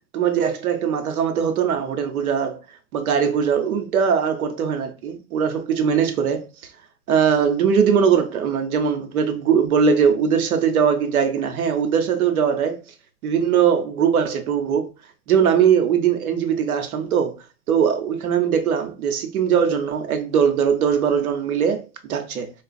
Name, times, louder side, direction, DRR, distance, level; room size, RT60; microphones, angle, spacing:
voice 1, 0.1-2.6 2.9-6.5 7.1-12.8 13.2-14.9 15.3-17.3 17.7-22.5, right 7 dB, 85° right, 0.9 m, -20 dB
4.5 x 2.3 x 2.5 m
hypercardioid pair, 115°, 42 cm